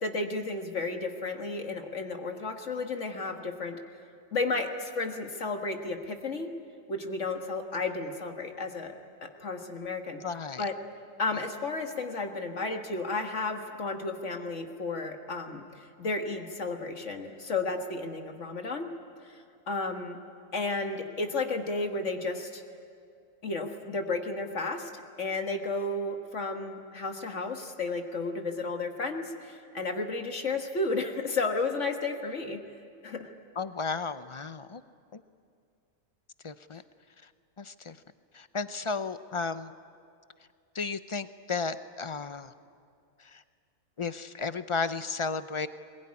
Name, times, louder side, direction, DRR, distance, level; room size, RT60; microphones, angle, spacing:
voice 1, 0.0-3.8 4.3-6.5 6.9-9.0 9.2-10.2 10.6-10.7 11.2-15.6 16.0-18.9 19.3-20.2 20.5-22.6 23.4-24.9 25.2-32.6 33.0-33.3, left 3 dB, 60° left, 4 dB, 2.0 m, -33 dB
voice 2, 10.2-10.7 11.3-11.5 33.6-34.8 35.1-35.2 36.4-36.8 37.2-37.3 37.6-38.0 38.3-39.7 40.7-42.5 43.2-43.4 44.0-45.7, left 4 dB, 45° left, 12 dB, 0.4 m, -34 dB
22.0 x 21.5 x 9.7 m, 2.3 s
omnidirectional pair, 1.4 m